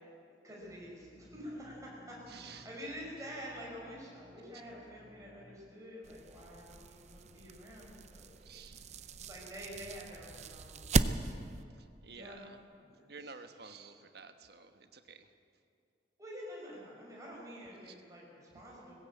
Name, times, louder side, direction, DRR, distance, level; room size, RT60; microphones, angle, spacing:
voice 1, 0.4-8.5 9.2-11.5 12.1-13.1 16.2-18.9, equal, 20° right, -4 dB, 5.7 m, -48 dB
sound 1, 0.6-5.7, equal, 10° left, 1.2 m, -60 dB
voice 2, 2.3-2.7 8.4-9.0 11.8-12.6 13.1-15.3 17.8-17.9, right 4 dB, 60° right, 7 dB, 1.3 m, -52 dB
sound 2, 6.0-11.6, right 3 dB, 40° right, 0.6 m, -37 dB
19.5 x 16.0 x 8.5 m, 2.4 s
head